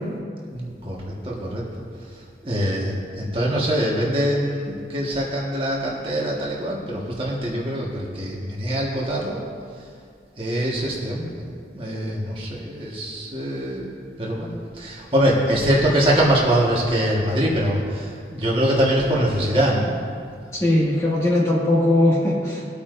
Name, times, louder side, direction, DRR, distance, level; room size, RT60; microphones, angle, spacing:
voice 1, 0.5-1.7 2.4-9.4 10.4-13.9 14.2-19.9, equal, 30° right, -4 dB, 1.5 m, -23 dB
voice 2, 20.5-22.6, left 1 dB, 20° left, -5 dB, 1.9 m, -19 dB
20.0 x 8.4 x 2.6 m, 2.2 s
head